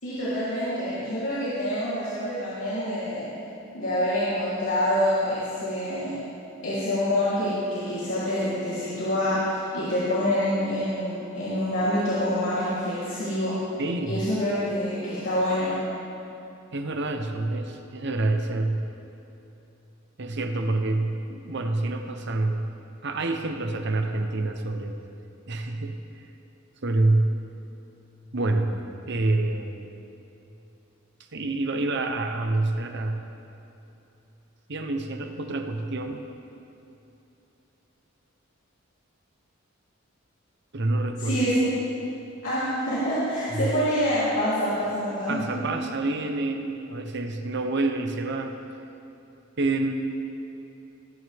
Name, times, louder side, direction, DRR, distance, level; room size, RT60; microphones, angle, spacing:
voice 1, 0.0-3.2 3.7-6.1 6.6-13.5 14.0-15.7 41.2-41.7 42.4-45.6, equal, 70° left, -13 dB, 3.5 m, -26 dB
voice 2, 13.8-14.3 16.7-18.9 20.2-22.7 23.0-25.0 25.5-26.0 26.8-27.4 28.3-28.8 29.1-29.9 31.3-33.2 34.7-36.3 40.7-41.4 43.5-43.7 45.3-48.5 49.6-50.1, right 2 dB, 60° right, 5 dB, 0.9 m, -27 dB
22.0 x 9.4 x 3.6 m, 2.9 s
head